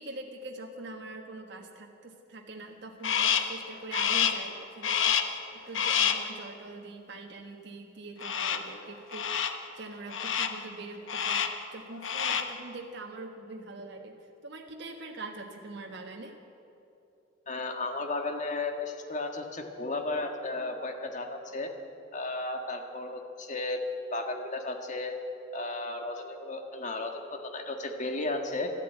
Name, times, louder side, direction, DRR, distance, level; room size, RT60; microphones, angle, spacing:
voice 1, 0.0-14.2 14.4-16.4, right 2 dB, 65° right, 1 dB, 1.3 m, -43 dB
Crow, 3.0-3.6 3.9-4.5 4.8-5.4 5.7-6.3 8.2-8.7 9.1-9.6 10.1-10.6 11.1-11.6 12.0-12.6, left 8 dB, 75° left, 0.9 m, -28 dB
voice 2, 17.5-21.7 22.1-25.1 25.5-28.7, left 2 dB, 40° left, 4 dB, 1.6 m, -34 dB
12.5 x 12.5 x 9.0 m, 2.7 s
head